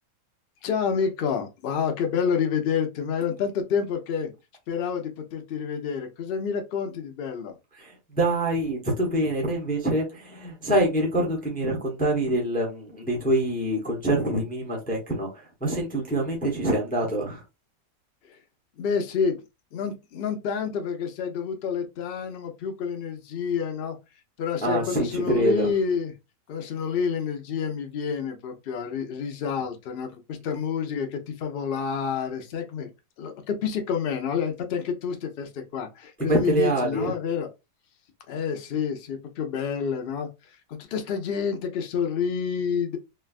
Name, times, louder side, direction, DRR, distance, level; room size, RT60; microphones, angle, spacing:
voice 1, 0.6-4.3 4.7-7.5 18.8-19.4 19.7-24.0 24.4-26.1 26.5-32.9 33.2-37.5 38.3-40.3 40.7-43.0, left 6 dB, 75° left, 0.5 m, -28 dB
voice 2, 7.8-17.4 24.6-25.7 36.2-37.1, right 1 dB, 15° left, 0.4 m, -25 dB
3.3 x 2.2 x 2.3 m
omnidirectional pair, 1.7 m